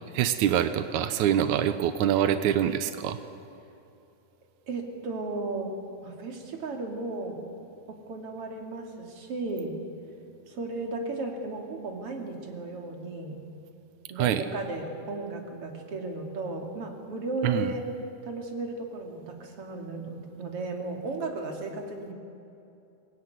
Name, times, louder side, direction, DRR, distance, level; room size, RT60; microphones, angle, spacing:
voice 1, 0.1-3.2 14.2-14.4 17.4-17.7, right 10 dB, 85° right, 10 dB, 1.6 m, -25 dB
voice 2, 4.7-5.7 6.0-7.4 7.9-9.8 10.5-13.4 14.1-17.9 18.2-22.1, right 2 dB, 40° right, 2 dB, 3.2 m, -35 dB
24.0 x 21.0 x 9.6 m, 2.7 s
omnidirectional pair, 4.6 m